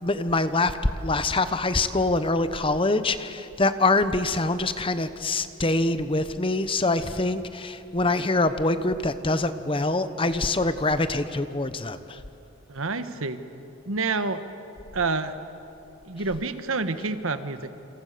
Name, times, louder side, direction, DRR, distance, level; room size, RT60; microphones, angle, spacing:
voice 1, 0.0-12.2, left 2 dB, 25° left, 11 dB, 0.9 m, -24 dB
voice 2, 12.7-13.4 13.9-14.4 14.9-15.3 16.1-17.7, right 3 dB, 75° right, 10 dB, 1.4 m, -28 dB
28.0 x 27.0 x 6.8 m, 2.8 s
head